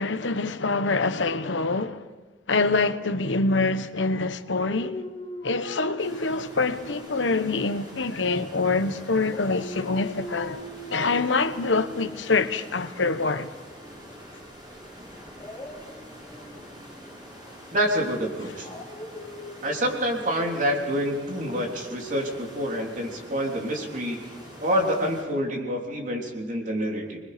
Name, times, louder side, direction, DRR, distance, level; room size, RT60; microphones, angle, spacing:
voice 1, 0.0-2.0 2.5-5.0 5.4-13.5, left 3 dB, 85° left, 1.1 m, -25 dB
Dog, 4.7-8.8 9.2-14.2 15.3-22.3, left 1 dB, 15° left, 4.7 m, -43 dB
sound 1, 6.0-25.2, equal, 25° right, 7.2 m, -45 dB
voice 2, 17.7-18.7 19.6-24.2 24.6-27.2, equal, 45° right, 3.4 m, -27 dB
25.5 x 22.0 x 5.1 m
head